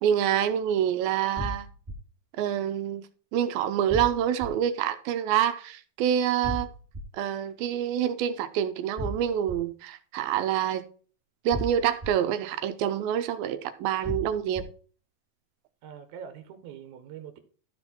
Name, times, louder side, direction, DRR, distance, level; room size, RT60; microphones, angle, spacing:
voice 1, 0.0-1.7 2.4-3.0 3.3-6.7 7.1-10.9 11.5-14.7, right 10 dB, 80° right, 2.4 m, -27 dB
sound 1, 1.4-1.9 3.9-4.5 6.4-7.0 9.0-9.5 11.5-12.1 14.0-14.6, equal, 20° right, 2.0 m, -34 dB
voice 2, 15.8-17.4, right 8 dB, 65° right, 2.3 m, -43 dB
13.0 x 4.4 x 4.3 m
omnidirectional pair, 4.3 m